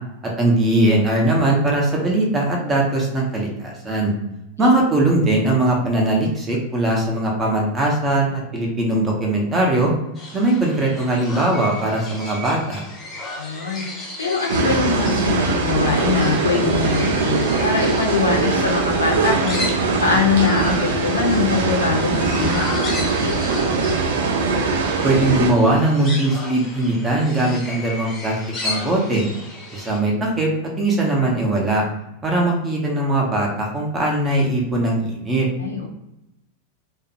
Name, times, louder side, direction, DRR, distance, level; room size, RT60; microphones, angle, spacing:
voice 1, 0.4-4.1 4.6-9.9 10.3-12.8 25.0-28.4 28.6-29.3 29.7-30.5 30.8-31.9 32.2-35.5, right 2 dB, 20° right, -1 dB, 0.6 m, -20 dB
sound 1, 10.1-30.0, left 2 dB, 25° left, 0.7 m, -34 dB
voice 2, 13.4-19.7 20.0-23.4 35.6-35.9, left 4 dB, 75° left, 0 dB, 0.5 m, -22 dB
sound 2, 14.5-25.5, right 4 dB, 60° right, 0.4 m, -21 dB
2.5 x 2.0 x 2.6 m, 0.88 s
figure-of-eight pair, 90°, 0 cm